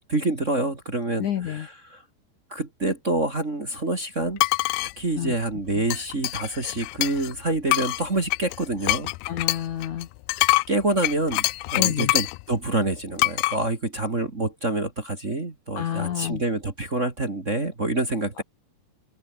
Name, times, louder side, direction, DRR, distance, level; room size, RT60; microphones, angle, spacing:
voice 1, 0.0-2.0 2.5-4.4 5.0-9.1 10.4-11.4 11.7-18.4, right 2 dB, 25° right, 2.0 m, -27 dB
voice 2, 1.2-1.7 5.2-5.4 9.3-10.1 11.8-12.1 15.7-16.4 18.4-18.5, left 10 dB, 60° left, 2.5 m, -29 dB
sound 1, 4.4-4.9 5.9-7.3 7.7-12.4 13.2-13.6, left 21 dB, 80° left, 2.4 m, -24 dB
open air
omnidirectional pair, 4.6 m